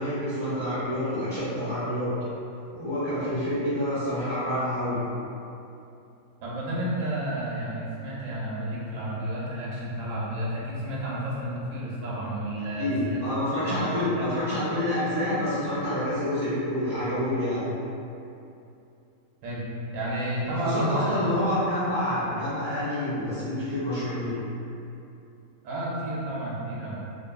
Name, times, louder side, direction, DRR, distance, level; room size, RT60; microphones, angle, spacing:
voice 1, 0.0-2.1 2.7-5.0 12.8-17.6 20.6-24.4, left 1 dB, 20° left, -15 dB, 1.1 m, -28 dB
voice 2, 6.4-13.2 13.6-13.8 14.2-14.6 19.4-19.6 19.9-21.3 25.6-27.0, right 1 dB, 70° right, -6 dB, 0.8 m, -31 dB
2.5 x 2.5 x 2.4 m, 2.7 s
omnidirectional pair, 1.7 m